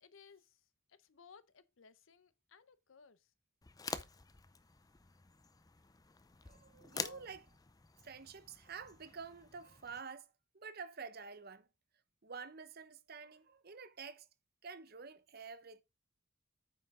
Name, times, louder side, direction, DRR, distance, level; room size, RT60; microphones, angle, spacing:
voice 1, 0.0-3.3 7.0-7.3, left 5 dB, 75° left, 0.7 m, -60 dB
sound 1, 3.6-10.0, left 5 dB, 20° left, 0.5 m, -48 dB
voice 2, 6.4-7.4 8.0-11.7 12.2-14.3 14.6-15.8, right 5 dB, 50° right, 0.8 m, -49 dB
8.8 x 5.9 x 3.6 m
head